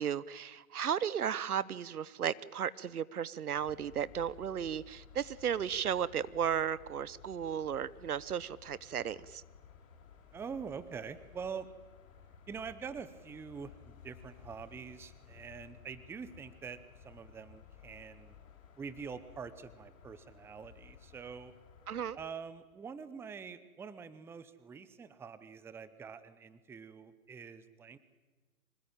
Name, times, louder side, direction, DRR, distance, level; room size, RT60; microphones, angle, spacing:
voice 1, 0.0-9.4 21.9-22.2, right 8 dB, 80° right, 20 dB, 1.0 m, -35 dB
sound 1, 3.5-22.3, left 8 dB, 60° left, 6.3 m, -57 dB
voice 2, 10.3-11.7 12.5-18.3 18.8-21.5 22.1-28.0, right 6 dB, 5° right, 14 dB, 0.7 m, -45 dB
24.5 x 19.5 x 9.0 m, 1.3 s
hypercardioid pair, 125°, 44 cm